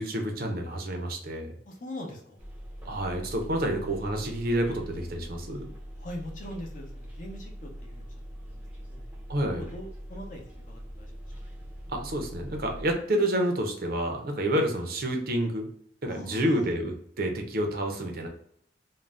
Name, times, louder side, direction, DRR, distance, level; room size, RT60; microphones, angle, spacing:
voice 1, 0.0-1.6 2.8-5.7 9.3-9.6 11.9-15.7 16.0-18.3, right 1 dB, 55° right, 3 dB, 0.5 m, -29 dB
voice 2, 1.7-2.4 6.0-9.0 9.6-11.3 16.1-16.7, left 1 dB, 45° left, 1 dB, 0.6 m, -42 dB
Bus, 2.4-12.9, equal, 10° right, 0.5 m, -42 dB
2.5 x 2.1 x 3.2 m, 0.65 s
head